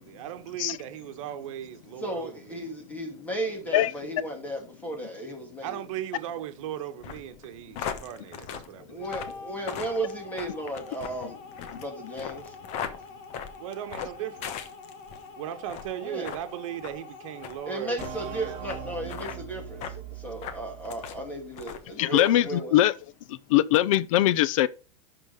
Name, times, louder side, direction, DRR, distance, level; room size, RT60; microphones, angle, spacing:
voice 1, 0.0-2.7 5.6-9.1 13.6-14.7 15.4-18.0, right 11 dB, 75° right, 1.2 m, -37 dB
voice 2, 2.0-5.8 8.9-12.6 16.0-16.3 17.7-22.8, right 1 dB, 10° left, 2.7 m, -35 dB
sound 1, 7.0-15.2 15.6-15.9 16.2-16.4 16.8-17.0 17.4-17.6 18.0-18.1 18.7-18.8 19.1-19.4 19.8-20.0 20.4-21.2 21.5-21.9 22.2-22.4, left 8 dB, 40° left, 1.2 m, -38 dB
sound 2, 9.0-19.1, left 4 dB, 60° left, 2.1 m, -45 dB
sound 3, 18.0-21.6, right 9 dB, 40° right, 1.6 m, -41 dB
voice 3, 22.0-22.9 23.3-24.7, left 14 dB, 80° left, 0.6 m, -22 dB
11.5 x 3.9 x 5.1 m
supercardioid pair, 155°, 17 cm